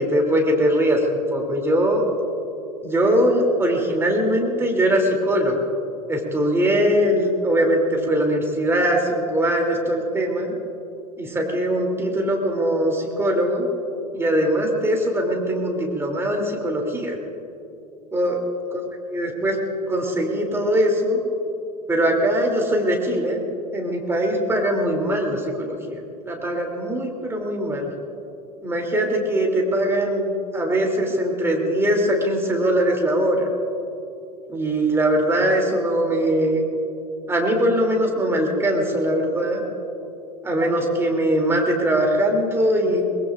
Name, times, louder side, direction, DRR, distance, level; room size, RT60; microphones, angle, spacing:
voice 1, 0.0-2.0 2.8-5.7 6.1-10.5 11.2-13.7 14.1-17.2 18.1-18.4 18.7-18.8 19.1-19.6 19.9-21.2 21.9-23.4 23.7-26.0 26.2-27.9 28.6-30.3 30.5-33.4 34.5-36.6 37.3-39.6 40.4-43.0, right 1 dB, 10° right, 1 dB, 3.0 m, -21 dB
23.0 x 20.5 x 2.6 m, 2.7 s
figure-of-eight pair, 75°, 19 cm